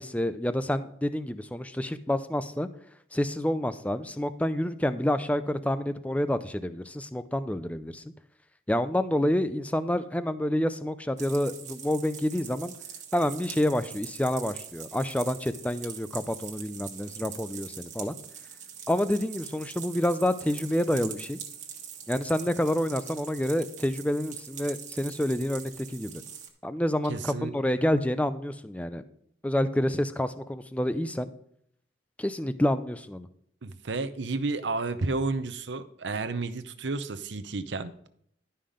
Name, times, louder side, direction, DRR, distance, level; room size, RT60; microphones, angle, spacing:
voice 1, 0.0-2.7 3.1-8.0 8.7-12.7 13.1-18.2 18.9-21.4 22.1-26.2 26.6-29.0 29.4-31.3 32.2-33.3, left 1 dB, 5° left, 12 dB, 0.4 m, -28 dB
sound 1, 11.2-26.5, right 8 dB, 40° right, 1.3 m, -43 dB
voice 2, 27.1-27.5 33.6-37.9, right 3 dB, 70° right, 12 dB, 0.7 m, -31 dB
11.5 x 5.6 x 5.1 m, 0.68 s
head